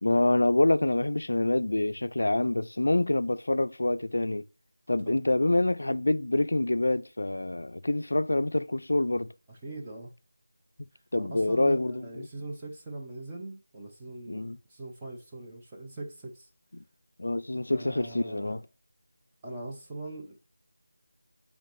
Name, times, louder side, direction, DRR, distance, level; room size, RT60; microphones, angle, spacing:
voice 1, 0.0-4.4 4.9-9.3 11.1-12.3 14.3-14.6 16.7-16.8 17.2-18.6, left 2 dB, 70° left, 0.3 m, -26 dB
voice 2, 9.5-10.1 11.2-16.5 17.7-18.6 19.4-20.3, right 2 dB, 10° right, 0.5 m, -41 dB
5.6 x 3.4 x 2.5 m
figure-of-eight pair, 175°, 0 cm